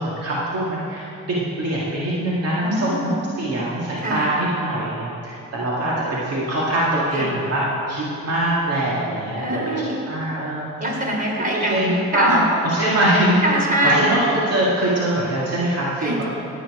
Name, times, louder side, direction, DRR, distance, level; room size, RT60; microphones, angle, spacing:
voice 1, 0.0-9.6 10.1-10.7 11.5-12.4 12.7-13.4 13.8-16.2, right 1 dB, 55° right, -6 dB, 2.2 m, -23 dB
voice 2, 2.6-3.3 4.0-4.3 7.1-7.3 9.4-10.0 10.8-12.4 13.4-14.0 16.0-16.2, right 1 dB, 30° right, -1 dB, 3.4 m, -23 dB
16.5 x 9.0 x 4.9 m, 2.7 s
cardioid pair, 90°, 30 cm